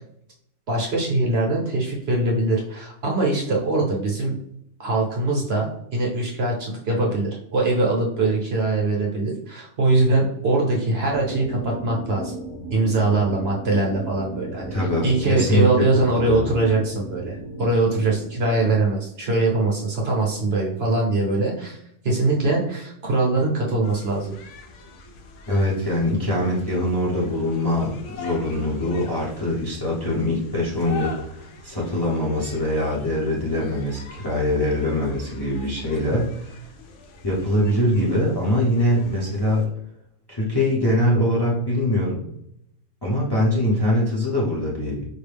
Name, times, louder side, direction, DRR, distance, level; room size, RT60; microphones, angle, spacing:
voice 1, 0.7-4.4 4.8-12.3 12.7-14.7 15.0-21.8 22.0-24.3, right 2 dB, 55° right, -1 dB, 0.9 m, -22 dB
sound 1, 11.1-18.8, right 2 dB, 50° left, 0.3 m, -36 dB
voice 2, 14.7-16.5 25.5-36.5 37.2-39.7 40.3-42.2 43.0-45.1, left 1 dB, 20° left, -5 dB, 0.8 m, -23 dB
sound 2, 23.8-39.7, left 3 dB, 70° left, 0.9 m, -43 dB
4.6 x 2.2 x 3.3 m, 0.76 s
omnidirectional pair, 1.3 m